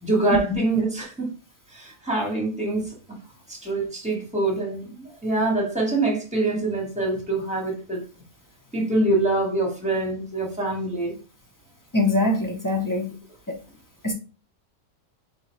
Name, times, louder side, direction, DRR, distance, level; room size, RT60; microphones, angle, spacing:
voice 1, 0.0-1.3 1.7-2.9 3.5-8.0 8.7-11.2, right 2 dB, 5° right, 1.5 m, -25 dB
voice 2, 11.9-13.1 13.5-13.6 14.0-14.1, left 2 dB, 20° left, 0.6 m, -23 dB
3.9 x 3.8 x 3.2 m
omnidirectional pair, 1.4 m